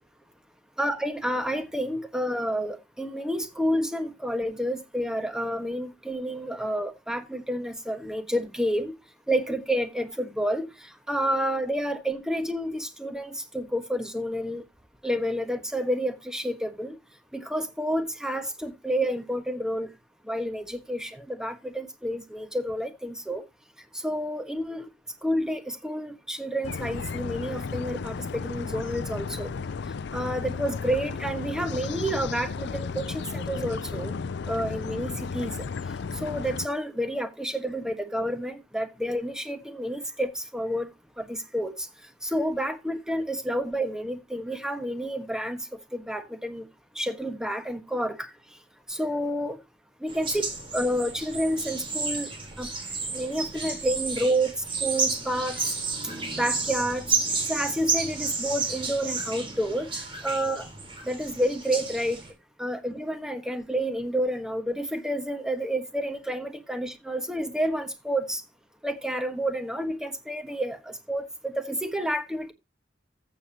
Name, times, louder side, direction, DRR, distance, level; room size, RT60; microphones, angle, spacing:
voice 1, 0.8-9.0 9.3-10.7 11.1-14.6 15.0-17.0 17.3-19.9 20.2-23.4 23.9-24.9 25.2-29.5 30.1-34.1 34.5-35.7 36.1-40.9 41.2-41.9 42.2-45.6 45.9-46.7 46.9-48.3 48.9-49.6 50.0-52.3 52.6-52.7 53.1-54.5 54.8-55.6 56.3-57.0 57.5-60.7 61.0-62.2 62.6-68.4 68.8-72.5, equal, 5° right, 1.4 m, -29 dB
sound 1, 26.6-36.7, left 5 dB, 65° left, 0.5 m, -34 dB
sound 2, 50.1-62.3, right 4 dB, 30° right, 3.9 m, -31 dB
14.5 x 7.1 x 2.9 m
head